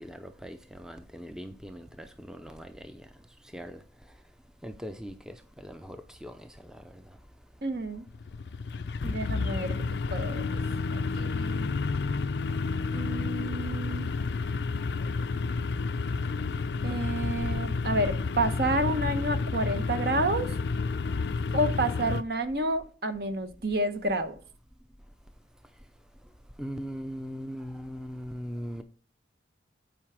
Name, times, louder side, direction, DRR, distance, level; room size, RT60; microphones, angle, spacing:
voice 1, 0.0-3.0 3.5-3.8 4.6-6.5 26.6-28.8, equal, 5° right, 0.5 m, -40 dB
voice 2, 7.6-8.1 9.0-9.7 10.1-10.6 10.9-11.8 12.9-14.1 16.8-20.5 21.5-24.4, right 1 dB, 60° right, 1.0 m, -30 dB
sound 1, 8.1-22.2, left 4 dB, 70° left, 0.4 m, -30 dB
8.9 x 4.8 x 4.9 m
head